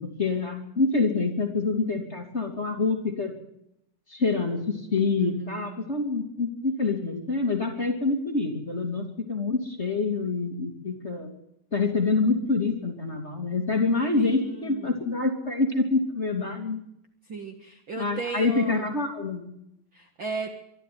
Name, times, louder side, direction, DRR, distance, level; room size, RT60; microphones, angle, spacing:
voice 1, 0.0-3.3 4.1-11.3 11.7-16.8 18.0-19.5, left 3 dB, 20° left, 2 dB, 2.7 m, -26 dB
voice 2, 5.2-5.9 14.2-15.0 17.3-18.9 19.9-20.5, right 4 dB, 45° right, 5 dB, 2.0 m, -36 dB
24.0 x 12.5 x 9.5 m, 0.77 s
omnidirectional pair, 3.9 m